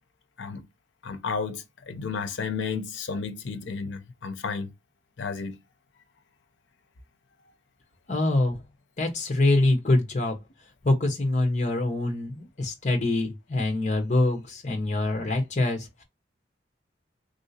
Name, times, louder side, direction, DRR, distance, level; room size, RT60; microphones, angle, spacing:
voice 1, 1.0-4.7 5.2-5.6, left 5 dB, 80° left, 0.6 m, -32 dB
voice 2, 8.1-8.6 9.0-10.4 10.8-15.9, left 2 dB, 40° left, 0.8 m, -24 dB
3.2 x 2.7 x 2.7 m
head